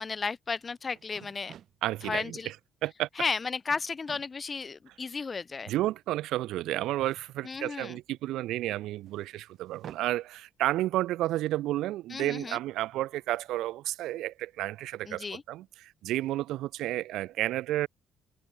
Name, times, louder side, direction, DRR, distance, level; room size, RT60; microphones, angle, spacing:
voice 1, 0.0-1.5 2.0-2.5 3.2-5.7 7.4-8.0 12.1-12.6 15.1-15.4, left 4 dB, 25° left, 0.8 m, -34 dB
sound 1, 0.6-0.7 1.0-1.8 3.0-3.4 3.7-4.3 5.2-5.3 6.7-8.0 9.0-10.1, right 10 dB, 50° right, 5.2 m, -51 dB
voice 2, 1.8-2.5 2.8-3.1 5.7-17.9, right 15 dB, 80° right, 2.0 m, -31 dB
cardioid pair, 145°, 0 cm